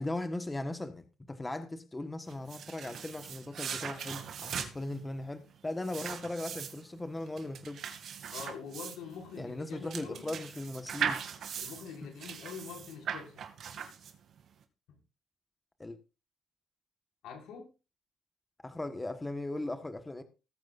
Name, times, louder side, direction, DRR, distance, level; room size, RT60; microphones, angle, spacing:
voice 1, 0.0-7.8 9.4-11.2 12.0-12.1 15.8-16.0 18.6-20.2, left 2 dB, 15° left, 1.5 m, -38 dB
sound 1, 2.3-14.4, right 7 dB, 65° right, 2.5 m, -40 dB
voice 2, 8.3-10.3 11.6-13.4 17.2-17.7, left 6 dB, 85° left, 5.9 m, -45 dB
19.5 x 9.1 x 2.6 m
cardioid pair, 90°, 0 cm